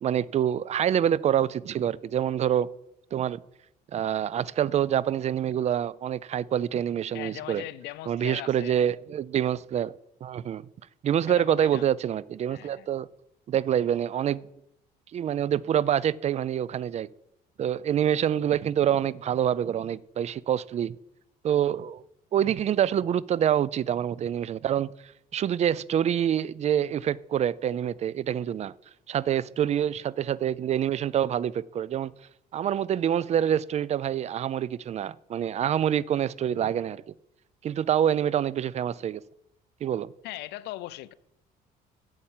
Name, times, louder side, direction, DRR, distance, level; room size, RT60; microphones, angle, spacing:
voice 1, 0.0-2.7 3.1-3.4 3.9-7.6 8.1-10.0 10.2-10.6 11.0-13.1 13.5-14.5 15.1-17.1 17.6-21.0 21.4-22.0 22.3-28.7 29.1-32.1 32.5-37.0 37.6-39.2 39.8-40.1, right 10 dB, 40° right, 0.4 m, -26 dB
voice 2, 7.1-8.8 11.4-11.9 12.5-12.9 40.2-41.1, left 15 dB, 85° left, 0.6 m, -39 dB
8.7 x 8.1 x 7.4 m
cardioid pair, 110°, 17 cm